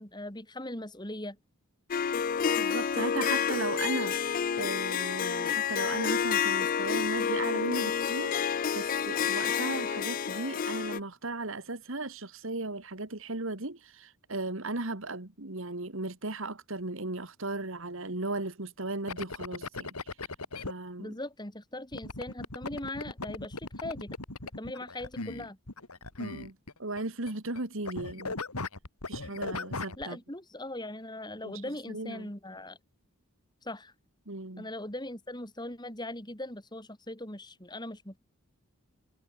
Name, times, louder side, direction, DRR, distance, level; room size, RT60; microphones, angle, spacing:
voice 1, 0.0-1.4 21.0-24.1 24.6-25.6 30.0-32.8 33.6-33.9 34.6-38.2, left 1 dB, 20° left, 3.9 m, -40 dB
Harp, 1.9-11.0, left 7 dB, 40° left, 0.3 m, -29 dB
voice 2, 2.6-20.0 20.6-21.1 26.2-28.4 29.1-30.2 31.4-31.6 31.9-32.3 34.3-34.7, right 2 dB, 60° right, 2.0 m, -36 dB
sound 1, 19.1-20.7 21.9-27.0 27.3-27.6 27.9-30.0, left 3 dB, 85° left, 3.5 m, -38 dB
head